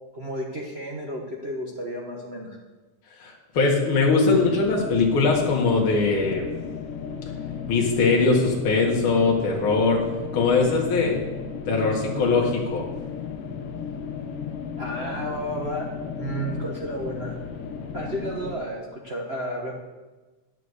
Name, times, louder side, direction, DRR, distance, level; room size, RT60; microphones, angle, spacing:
voice 1, 0.1-2.6 14.8-15.9 16.2-17.4 17.9-19.7, right 1 dB, 80° right, -2 dB, 0.5 m, -32 dB
voice 2, 3.2-6.5 7.7-10.0 10.3-11.2 11.7-12.8, left 4 dB, 50° left, -2 dB, 2.6 m, -21 dB
sound 1, 4.3-18.5, left 6 dB, 65° left, 1.6 m, -35 dB
10.0 x 7.0 x 8.1 m, 1.2 s
omnidirectional pair, 3.3 m